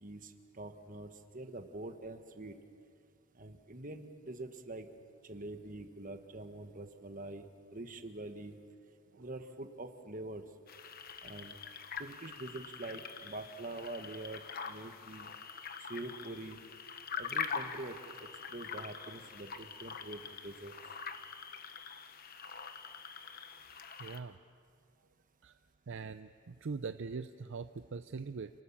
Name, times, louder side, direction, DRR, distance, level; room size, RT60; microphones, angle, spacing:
voice 1, 0.0-2.6 3.4-4.9 5.2-8.6 9.2-10.5 11.2-11.5 12.0-15.3 15.8-16.6 17.2-20.7, right 2 dB, 35° right, 7 dB, 1.4 m, -45 dB
sound 1, 10.7-24.2, left 6 dB, 40° left, 1.1 m, -44 dB
voice 2, 24.0-24.4 25.4-25.5 25.9-28.5, right 4 dB, 55° right, 10 dB, 0.5 m, -42 dB
28.5 x 20.0 x 7.3 m, 2.3 s
head